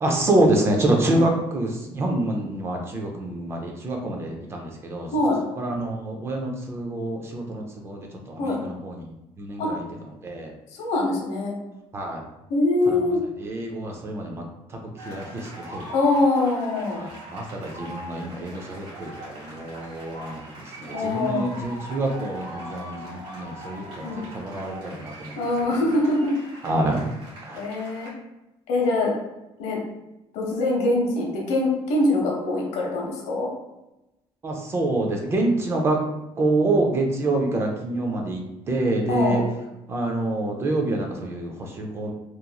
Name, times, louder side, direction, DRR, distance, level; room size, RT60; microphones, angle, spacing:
voice 1, 0.0-5.1 5.6-9.8 10.2-10.5 11.9-12.3 12.9-15.9 16.9-25.5 26.6-27.0 27.4-27.6 34.4-36.0 36.4-39.4 39.9-42.1, right 2 dB, 25° right, 1 dB, 0.3 m, -27 dB
voice 2, 10.8-11.5 12.5-13.2 15.9-17.0 20.9-21.5 24.0-24.2 25.4-26.3 27.5-28.1 28.7-29.1 29.6-29.8 30.3-33.5 39.1-39.4, left 2 dB, 85° left, -1 dB, 0.8 m, -23 dB
sound 1, 15.0-28.1, right 1 dB, 50° right, 1.4 m, -41 dB
2.9 x 2.4 x 2.2 m, 0.95 s
cardioid pair, 175°, 11 cm